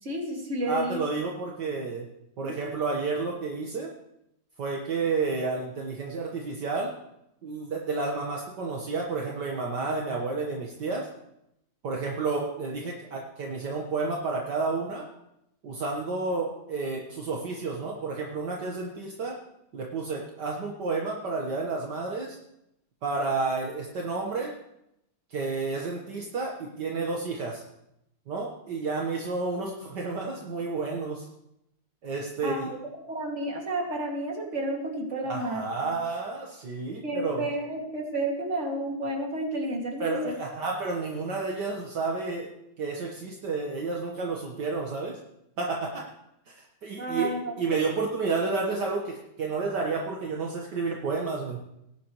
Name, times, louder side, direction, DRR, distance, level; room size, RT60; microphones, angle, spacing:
voice 1, 0.0-1.0 2.4-2.6 32.4-32.8 33.1-35.9 37.0-40.4 47.0-47.6, right 1 dB, 40° right, 0 dB, 2.5 m, -31 dB
voice 2, 0.7-2.1 2.4-3.9 4.6-6.9 7.4-11.1 11.8-15.1 15.6-19.4 19.7-22.4 23.0-24.5 25.3-27.6 28.3-31.3 32.0-32.7 35.2-37.5 40.0-45.2 45.6-46.1 46.5-51.6, right 4 dB, 65° right, -1 dB, 1.9 m, -31 dB
19.0 x 10.5 x 3.1 m, 0.81 s
omnidirectional pair, 2.1 m